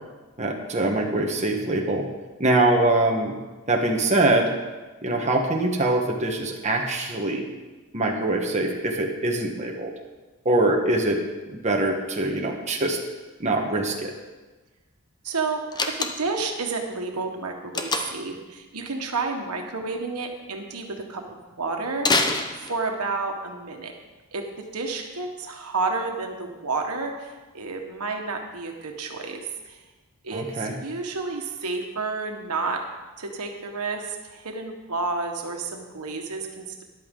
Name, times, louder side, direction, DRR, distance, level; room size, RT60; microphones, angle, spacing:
voice 1, 0.4-2.1 2.4-3.4 3.7-4.5 5.0-7.5 7.9-9.9 10.4-11.2 11.5-13.0 13.4-14.1 30.3-30.8, right 2 dB, 30° right, 1 dB, 1.2 m, -23 dB
voice 2, 15.2-23.9 24.3-29.8 30.2-32.8 33.2-36.8, right 3 dB, 85° right, 3 dB, 1.4 m, -31 dB
Slam, 15.7-16.5 17.7-18.3 22.0-23.1, left 3 dB, 20° left, 0.8 m, -25 dB
13.0 x 11.0 x 3.8 m, 1.2 s
head